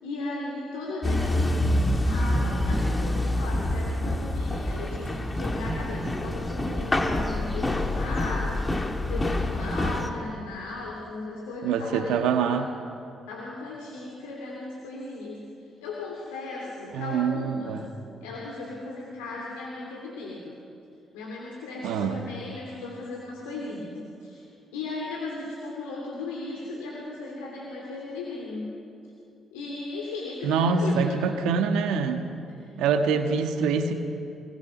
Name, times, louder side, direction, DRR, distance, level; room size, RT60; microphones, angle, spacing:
voice 1, 0.0-8.7 9.0-12.6 13.3-17.8 18.2-20.6 21.1-28.7 29.5-31.2 31.9-32.0 32.5-32.7, left 2 dB, 85° left, -2 dB, 2.9 m, -36 dB
sound 1, 1.0-10.1, left 1 dB, 25° left, 2.6 m, -26 dB
voice 2, 11.6-12.7 16.9-17.8 21.8-22.2 30.4-32.2 32.8-33.9, right 5 dB, 75° right, 6 dB, 1.5 m, -25 dB
25.5 x 20.0 x 6.1 m, 2.6 s
hypercardioid pair, 45°, 0 cm